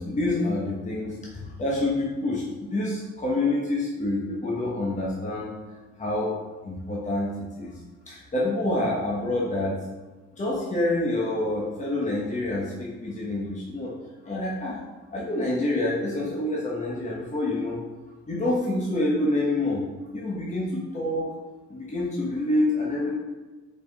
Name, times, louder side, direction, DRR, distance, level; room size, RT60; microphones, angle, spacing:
voice 1, 0.0-5.5 6.0-6.3 6.6-7.7 8.1-9.8 10.4-13.9 14.2-14.8 15.1-17.8 18.3-19.8 20.1-21.3 21.7-23.1, left 1 dB, 25° left, -4 dB, 1.2 m, -27 dB
5.1 x 4.7 x 4.0 m, 1.3 s
cardioid pair, 90°, 30 cm